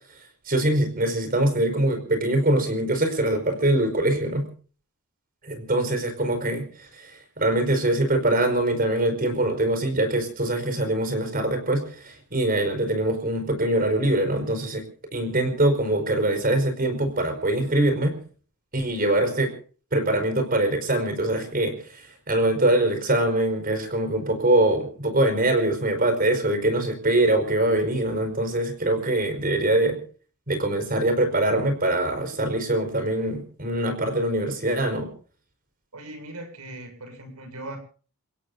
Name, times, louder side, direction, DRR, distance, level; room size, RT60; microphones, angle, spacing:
voice 1, 0.5-4.5 5.4-14.8 15.1-18.1 18.7-19.5 19.9-30.0 30.5-35.1, right 1 dB, 40° right, 8 dB, 5.3 m, -23 dB
voice 2, 35.9-37.8, right 1 dB, 80° right, 7 dB, 7.7 m, -39 dB
30.0 x 16.5 x 2.7 m, 0.42 s
head